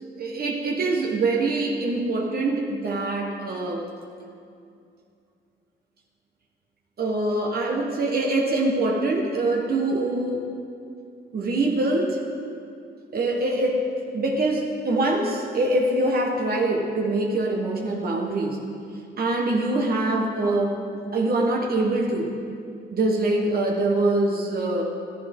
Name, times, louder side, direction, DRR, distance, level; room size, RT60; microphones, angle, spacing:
voice 1, 0.2-3.8 7.0-10.5 11.3-12.2 13.1-13.8 14.1-18.6 19.2-20.8 21.1-22.3 22.9-24.8, right 2 dB, 50° right, 0 dB, 1.4 m, -24 dB
14.5 x 11.5 x 3.7 m, 2.5 s
cardioid pair, 90°, 20 cm